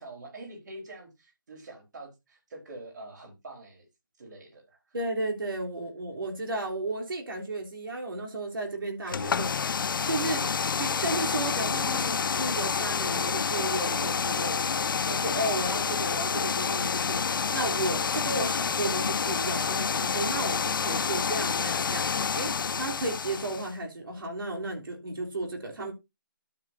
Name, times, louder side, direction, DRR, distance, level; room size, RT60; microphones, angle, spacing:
voice 1, 0.0-3.8 4.2-5.0 10.2-10.5, right 2 dB, 55° right, 4.4 m, -45 dB
voice 2, 4.9-9.8 10.1-10.4 10.8-14.7 15.0-22.0 22.3-25.9, right 2 dB, 80° right, 3.5 m, -33 dB
sound 1, 9.1-23.7, left 6 dB, 70° left, 0.4 m, -28 dB
12.0 x 7.2 x 2.7 m
hypercardioid pair, 165°, 11 cm